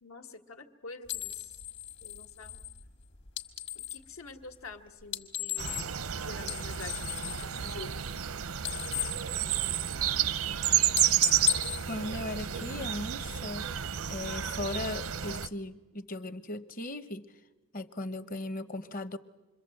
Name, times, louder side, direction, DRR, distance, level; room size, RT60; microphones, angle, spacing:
voice 1, 0.0-1.6 2.0-2.6 3.8-5.8 6.1-7.0 7.4-8.0, left 3 dB, 80° left, 6 dB, 1.7 m, -47 dB
sound 1, 1.1-4.1 5.0-6.1 6.4-8.3 8.5-10.1 10.4-10.6 10.9-12.8, left 12 dB, 55° left, 1.6 m, -36 dB
sound 2, 5.6-15.5, right 10 dB, 85° right, 0.8 m, -31 dB
voice 2, 11.9-13.7 14.1-17.3 17.7-19.2, left 2 dB, 40° left, 12 dB, 0.9 m, -37 dB
27.0 x 22.5 x 7.8 m, 1.2 s
head